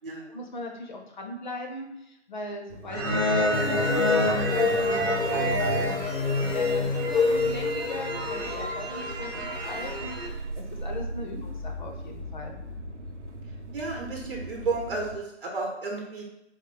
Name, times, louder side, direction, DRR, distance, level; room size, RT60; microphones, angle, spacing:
voice 1, 0.3-12.6, left 1 dB, 40° left, 2 dB, 0.6 m, -39 dB
Motor vehicle (road) / Engine starting, 2.7-15.2, right 1 dB, 90° right, 0.7 m, -40 dB
sound 1, 2.9-10.2, right 1 dB, 20° right, 0.4 m, -29 dB
sound 2, 3.5-9.9, left 4 dB, 85° left, 0.5 m, -28 dB
voice 2, 13.7-16.2, right 3 dB, 50° right, 0 dB, 0.9 m, -32 dB
4.2 x 2.0 x 3.9 m, 0.86 s
figure-of-eight pair, 150°, 35 cm